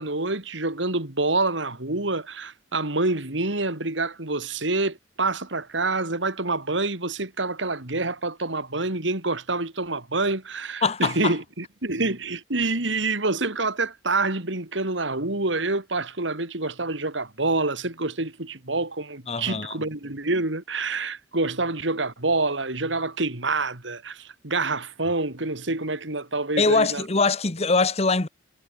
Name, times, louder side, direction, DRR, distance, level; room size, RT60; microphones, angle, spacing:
voice 1, 0.0-27.0, right 3 dB, 75° right, 3.1 m, -27 dB
voice 2, 10.8-11.3 19.3-19.8 26.6-28.3, left 3 dB, 35° left, 1.2 m, -22 dB
head